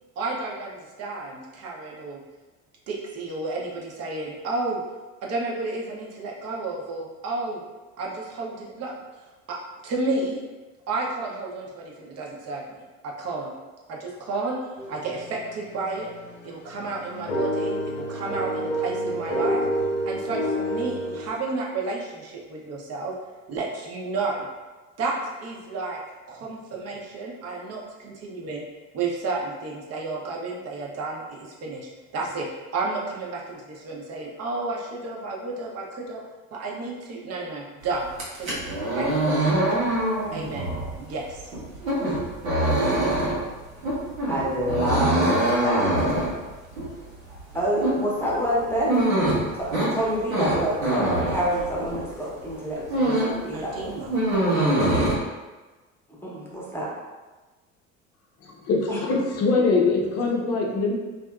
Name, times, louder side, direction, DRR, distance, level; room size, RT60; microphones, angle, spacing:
voice 1, 0.2-2.2 2.9-4.8 5.2-7.6 8.0-8.9 9.5-9.6 9.8-10.4 10.9-12.8 13.2-13.5 13.9-14.6 14.9-16.1 16.4-19.6 20.1-23.1 23.5-24.5 25.0-26.0 26.3-28.6 28.9-36.2 36.5-38.1 38.4-38.6 38.9-39.6 40.3-41.5 53.5-54.1, right 3 dB, 40° right, -2 dB, 0.7 m, -31 dB
sound 1, 14.8-21.3, right 1 dB, 80° left, 0.8 m, -29 dB
sound 2, 38.1-52.1 52.5-53.5 53.7-55.1, right 1 dB, 80° right, 0.9 m, -24 dB
voice 2, 44.3-45.3 45.6-45.9 47.5-48.9 49.5-54.0 56.2-56.9 58.9-59.0, equal, 5° left, -6 dB, 0.8 m, -27 dB
voice 3, 58.4-60.9, left 3 dB, 40° left, -1 dB, 0.6 m, -23 dB
2.6 x 2.4 x 2.3 m, 1.2 s
hypercardioid pair, 70°, 40 cm